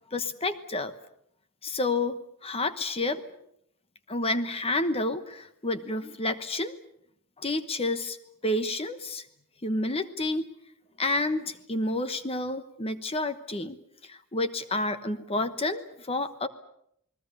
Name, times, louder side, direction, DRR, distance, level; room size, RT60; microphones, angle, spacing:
voice 1, 0.1-0.9 1.6-3.2 4.1-6.7 7.4-8.2 8.4-9.2 9.6-10.5 11.0-13.8 14.0-16.5, left 2 dB, 25° left, 11 dB, 1.1 m, -29 dB
29.0 x 20.0 x 6.9 m, 0.72 s
head